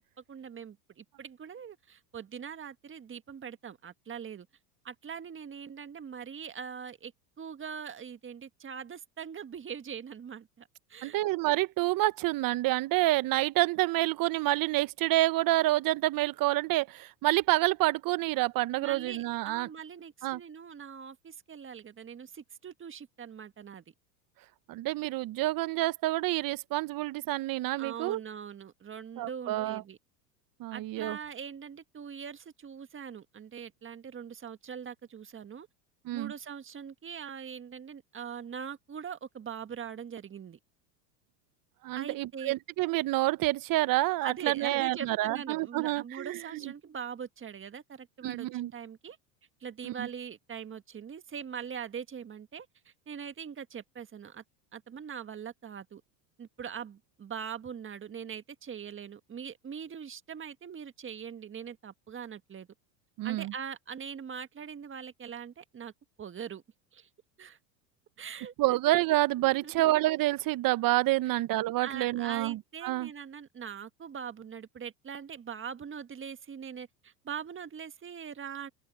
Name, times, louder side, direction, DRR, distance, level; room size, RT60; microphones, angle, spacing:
voice 1, 0.3-4.5 4.8-7.1 7.4-11.2 18.8-23.8 27.8-30.0 30.7-35.7 36.1-40.6 41.9-42.5 44.2-49.2 49.6-54.4 54.7-56.0 56.4-62.7 63.2-65.9 66.2-66.6 66.9-67.1 67.4-67.6 68.2-68.8 69.4-69.9 71.8-78.7, right 7 dB, 25° right, 1.6 m, -42 dB
voice 2, 11.0-19.7 20.2-20.4 24.7-28.2 29.2-29.8 30.6-31.2 36.0-36.3 41.8-46.7 48.2-48.7 49.8-50.1 63.2-63.5 68.6-73.1, right 17 dB, 40° right, 1.1 m, -28 dB
open air
hypercardioid pair, 95°, 49 cm